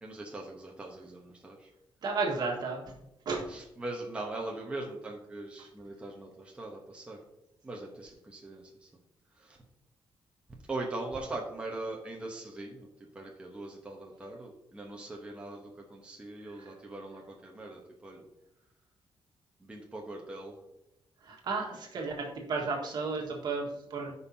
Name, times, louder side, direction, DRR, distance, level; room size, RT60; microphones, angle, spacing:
voice 1, 0.0-1.7 3.5-7.2 7.6-8.9 9.4-9.6 10.7-12.9 13.1-18.2 19.6-20.5, right 2 dB, 15° right, -1 dB, 1.0 m, -41 dB
voice 2, 2.0-2.8 3.3-3.5 21.3-24.1, right 4 dB, 55° right, 0 dB, 1.7 m, -33 dB
14.0 x 5.5 x 2.8 m, 0.88 s
wide cardioid pair, 160°, 9 cm